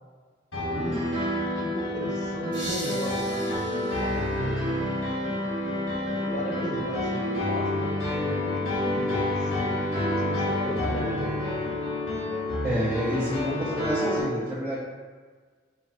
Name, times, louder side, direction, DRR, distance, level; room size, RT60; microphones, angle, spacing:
Piano, 0.5-14.2, left 1 dB, 75° left, 1.4 m, -28 dB
voice 1, 0.6-1.1 1.6-4.9 6.2-9.8 10.1-11.4, left 1 dB, 35° left, 0 dB, 0.3 m, -36 dB
sound 1, 2.5-5.3, right 1 dB, 25° right, 1.1 m, -40 dB
voice 2, 12.6-14.8, equal, 10° right, -14 dB, 1.4 m, -28 dB
2.9 x 2.3 x 3.6 m, 1.5 s
head